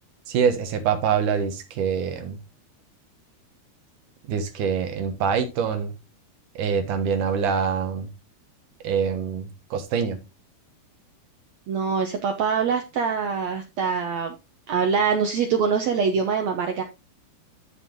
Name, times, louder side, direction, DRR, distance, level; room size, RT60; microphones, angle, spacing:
voice 1, 0.3-2.4 4.3-5.9 6.6-8.1 8.8-10.2, right 7 dB, 65° right, 2.5 m, -25 dB
voice 2, 11.7-14.3 14.7-16.8, right 6 dB, 80° right, 1.5 m, -24 dB
13.0 x 4.5 x 3.7 m
omnidirectional pair, 4.5 m